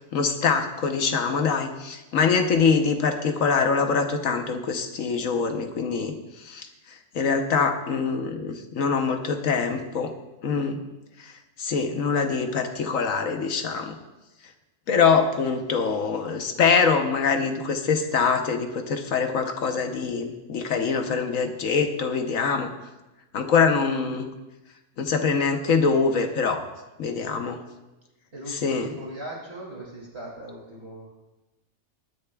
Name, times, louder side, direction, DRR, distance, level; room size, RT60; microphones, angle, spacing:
voice 1, 0.1-6.7 7.1-10.1 10.4-10.8 11.2-11.3 11.6-14.0 14.9-22.7 23.3-24.3 25.0-26.6 27.0-27.6 28.5-28.9, left 5 dB, 70° left, 6 dB, 1.3 m, -24 dB
voice 2, 28.3-31.1, right 1 dB, 50° right, -3 dB, 2.9 m, -39 dB
20.5 x 10.0 x 2.4 m, 1.0 s
omnidirectional pair, 1.5 m